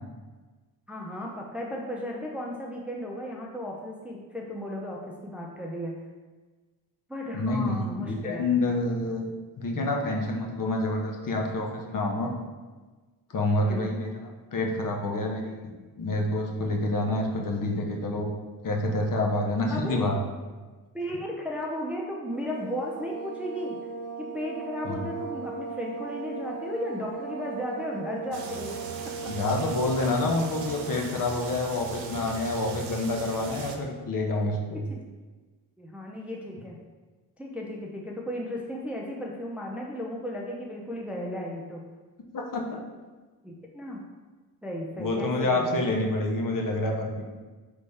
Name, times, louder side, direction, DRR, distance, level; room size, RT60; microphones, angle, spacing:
voice 1, 0.9-6.0 7.1-8.5 13.6-13.9 19.7-20.1 20.9-23.8 24.2-28.8 29.0-29.1 34.7-35.0 35.8-36.8 37.4-41.8 43.4-44.0 44.6-46.1, equal, 5° right, -1 dB, 0.6 m, -35 dB
voice 2, 7.3-9.2 9.6-12.3 13.3-15.7 16.0-18.3 18.6-20.2 24.8-25.1 29.3-34.8 42.3-42.8 45.0-47.2, left 2 dB, 40° left, 1 dB, 0.9 m, -28 dB
sound 1, 22.3-31.1, right 5 dB, 45° right, 0.8 m, -38 dB
sound 2, 28.3-33.8, right 4 dB, 90° right, 0.7 m, -40 dB
4.0 x 3.3 x 3.4 m, 1.3 s
hypercardioid pair, 55°, 49 cm